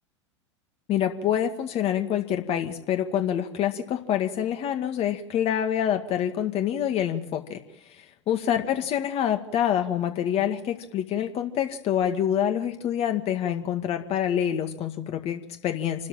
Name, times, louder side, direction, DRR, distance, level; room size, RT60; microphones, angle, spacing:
voice 1, 0.9-7.6 7.9-16.1, left 10 dB, 40° left, 6 dB, 2.1 m, -26 dB
28.0 x 13.0 x 9.0 m, 0.86 s
hypercardioid pair, 85°, 15 cm